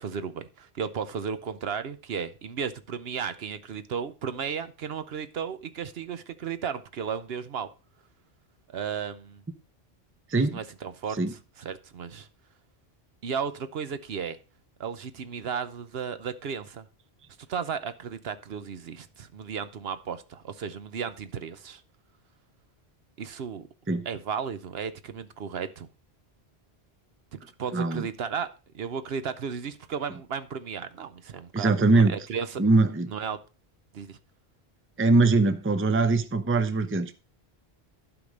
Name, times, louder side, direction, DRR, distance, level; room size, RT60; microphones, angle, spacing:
voice 1, 0.0-7.7 8.7-9.4 10.3-11.2 11.6-12.3 13.2-14.4 14.8-16.9 17.5-21.8 23.2-23.7 24.1-25.9 27.3-28.5 28.7-32.6 33.1-33.4 33.9-34.2, right 6 dB, 65° right, 1.0 m, -34 dB
voice 2, 27.7-28.1 31.5-32.2 32.6-33.1 35.0-37.1, right 3 dB, 15° right, 0.6 m, -22 dB
12.0 x 5.1 x 5.1 m
omnidirectional pair, 1.1 m